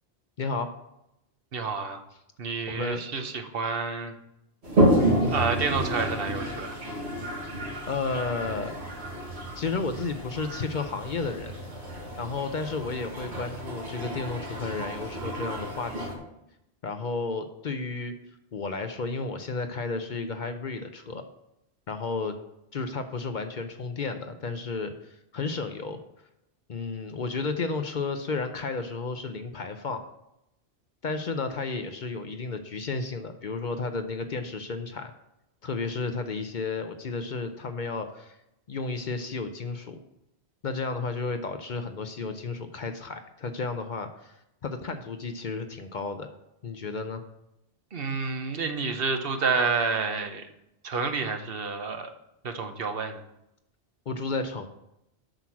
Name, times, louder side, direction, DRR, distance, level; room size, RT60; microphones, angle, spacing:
voice 1, 0.4-0.7 2.7-3.0 5.0-5.3 7.9-8.7 9.6-11.5 12.2-16.2 16.8-18.1 18.5-21.2 21.9-22.4 22.7-26.0 26.7-30.0 31.0-35.1 35.6-38.4 38.7-40.0 40.6-46.3 46.6-47.2 54.1-54.7, left 4 dB, 50° left, 8 dB, 0.8 m, -32 dB
voice 2, 1.5-2.0 2.4-4.1 5.2-6.8 47.9-50.5 50.8-52.1 52.4-53.2, right 4 dB, 60° right, 6 dB, 1.1 m, -29 dB
Toilet flush, 4.6-16.1, right 1 dB, 90° right, 2.2 m, -30 dB
7.8 x 6.1 x 6.0 m, 0.84 s
omnidirectional pair, 1.1 m